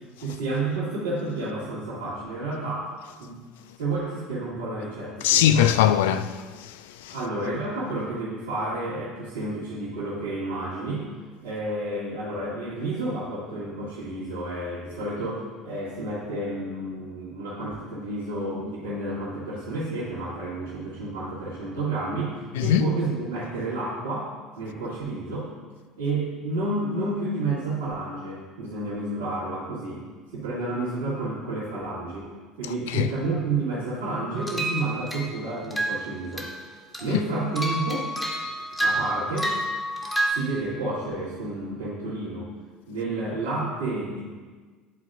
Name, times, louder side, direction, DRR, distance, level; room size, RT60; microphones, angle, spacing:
voice 1, 0.2-2.9 3.2-3.4 3.8-5.7 7.1-11.1 11.4-25.5 26.0-30.0 30.3-32.3 32.6-36.5 37.0-38.1 38.8-39.5 40.3-42.5 42.9-44.2, right 2 dB, 70° right, 1.9 m, -30 dB
voice 2, 5.2-7.1 22.6-22.8 32.9-33.1, left 10 dB, 70° left, 0.3 m, -21 dB
sound 1, 34.4-35.3 35.7-36.0 36.4-36.6 36.9-40.3, right 1 dB, 10° left, 1.3 m, -29 dB
10.5 x 4.2 x 2.5 m
figure-of-eight pair, 65°, 0 cm